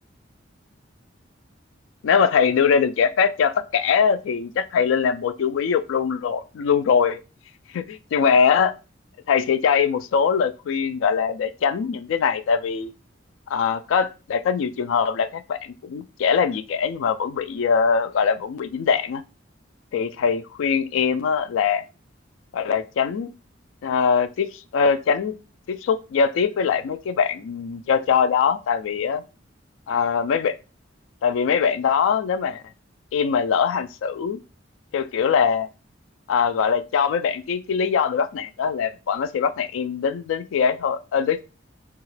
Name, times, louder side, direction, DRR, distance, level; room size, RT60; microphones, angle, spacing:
voice 1, 2.0-7.2 7.7-8.7 9.3-12.9 13.5-19.2 19.9-21.8 22.5-23.3 23.8-25.3 25.7-29.2 29.9-30.6 31.2-32.6 33.1-34.4 34.9-35.7 36.3-41.4, left 6 dB, 80° left, 0.3 m, -22 dB
2.8 x 2.3 x 3.1 m
head